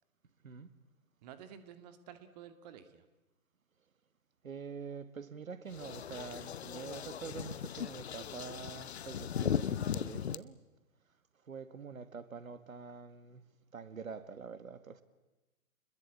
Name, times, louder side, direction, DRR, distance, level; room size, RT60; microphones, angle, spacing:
voice 1, 1.2-3.0, right 9 dB, 30° right, 2.1 m, -52 dB
voice 2, 4.4-10.6 11.5-13.4 13.7-15.0, right 5 dB, 70° right, 2.0 m, -46 dB
sound 1, 5.7-10.4, left 9 dB, 50° left, 0.9 m, -37 dB
29.5 x 21.5 x 8.5 m
figure-of-eight pair, 135°, 43 cm